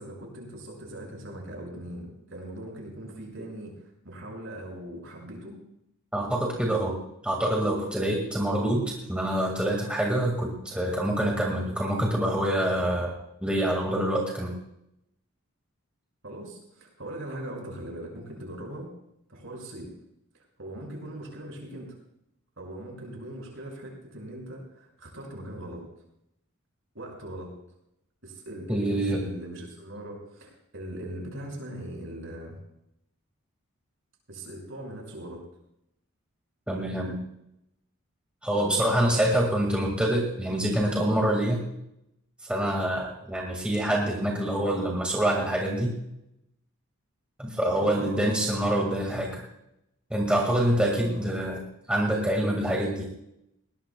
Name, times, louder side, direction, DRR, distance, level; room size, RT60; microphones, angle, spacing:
voice 1, 0.0-5.6 16.2-18.9 19.3-19.9 20.3-21.9 22.6-25.8 26.9-27.5 28.2-32.6 34.3-35.4 38.5-39.4 42.7-42.9 47.6-48.3 50.3-51.3 52.0-52.3, right 1 dB, 60° right, -1 dB, 5.7 m, -40 dB
voice 2, 6.1-7.0 7.2-13.1 13.4-14.6 28.7-29.2 36.7-37.2 38.4-41.6 42.4-45.9 47.4-49.4 50.1-51.6 51.9-53.1, right 1 dB, 5° right, -1 dB, 1.9 m, -26 dB
21.0 x 18.5 x 2.3 m, 0.81 s
head